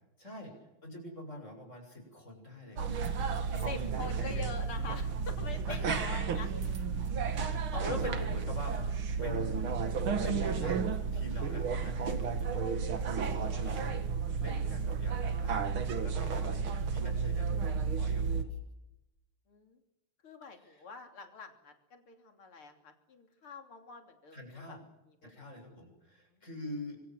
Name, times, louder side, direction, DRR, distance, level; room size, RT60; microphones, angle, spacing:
voice 1, 0.2-0.6 0.8-3.5 3.9-4.5 5.7-6.2 7.3-8.8 9.2-9.7 10.2-12.8 13.2-14.0 14.4-15.6 16.0-18.6 20.6-20.8 24.3-24.8 25.2-27.0, left 1 dB, 35° left, 3 dB, 7.6 m, -44 dB
sound 1, 2.8-18.4, right 5 dB, 70° right, 2.7 m, -32 dB
voice 2, 3.6-6.5 19.5-19.8 20.2-24.8 25.2-25.5, left 5 dB, 80° left, 5 dB, 4.0 m, -45 dB
26.0 x 24.0 x 7.7 m, 0.92 s
omnidirectional pair, 2.3 m